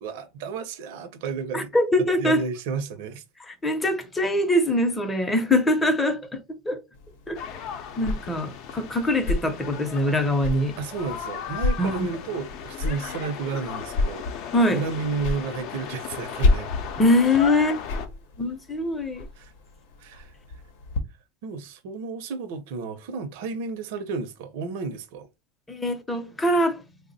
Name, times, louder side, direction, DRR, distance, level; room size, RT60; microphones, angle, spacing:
voice 1, 0.0-1.7 2.2-3.2 10.8-16.7 19.4-19.5 20.0-20.3 21.4-25.3, right 5 dB, 70° right, 0.6 m, -32 dB
voice 2, 1.5-2.4 3.5-6.8 7.3-7.6 8.0-10.8 11.8-12.1 14.5-14.8 17.0-18.1 18.4-19.3 25.7-26.8, left 1 dB, 10° left, 0.6 m, -23 dB
sound 1, 6.9-21.0, left 3 dB, 80° left, 0.8 m, -31 dB
sound 2, 7.3-18.1, left 8 dB, 55° left, 0.6 m, -37 dB
3.2 x 2.0 x 4.0 m
supercardioid pair, 140°, 0 cm